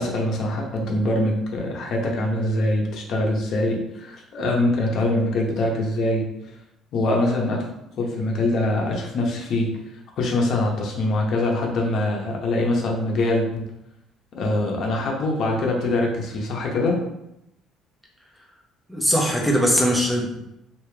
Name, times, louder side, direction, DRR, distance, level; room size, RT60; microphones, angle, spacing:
voice 1, 0.0-6.3 6.9-7.7 8.0-9.7 10.2-13.6 14.3-17.0, left 1 dB, 60° left, 0 dB, 0.9 m, -23 dB
voice 2, 18.9-20.3, equal, ahead, -1 dB, 0.8 m, -20 dB
3.2 x 2.9 x 3.3 m, 0.83 s
cardioid pair, 120°, 0 cm